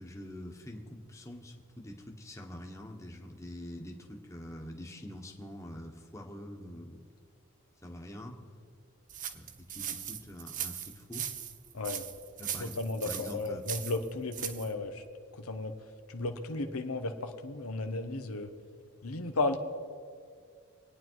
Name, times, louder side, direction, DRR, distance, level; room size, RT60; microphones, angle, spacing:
voice 1, 0.0-7.0 7.8-8.4 9.3-11.3 12.4-12.8 13.0-13.6, left 1 dB, 15° left, 1 dB, 1.3 m, -45 dB
sound 1, 9.1-14.7, right 9 dB, 35° right, 0.7 m, -39 dB
voice 2, 11.7-12.1 12.6-15.0 15.4-15.7 16.1-18.5 19.0-19.6, left 2 dB, 85° left, 6 dB, 1.1 m, -34 dB
25.5 x 9.4 x 4.7 m, 2.2 s
head